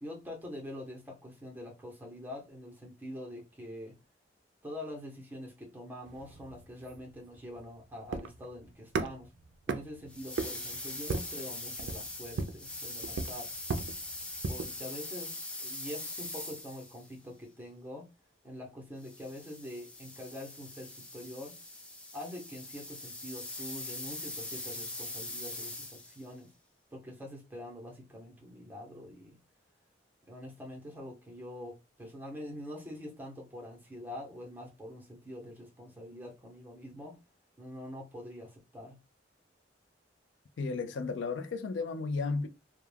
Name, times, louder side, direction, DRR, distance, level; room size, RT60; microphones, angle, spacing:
voice 1, 0.0-3.9 4.6-9.3 9.7-13.5 14.5-18.1 18.4-21.5 22.1-26.5 26.9-29.4 30.3-37.2 37.6-39.0, left 1 dB, 10° right, 0.8 m, -45 dB
sound 1, 6.1-14.8, right 3 dB, 75° right, 0.3 m, -38 dB
sound 2, 10.1-17.1 19.0-26.3, left 2 dB, 5° left, 0.4 m, -42 dB
voice 2, 40.6-42.5, left 4 dB, 75° left, 0.4 m, -33 dB
2.3 x 2.2 x 3.2 m
head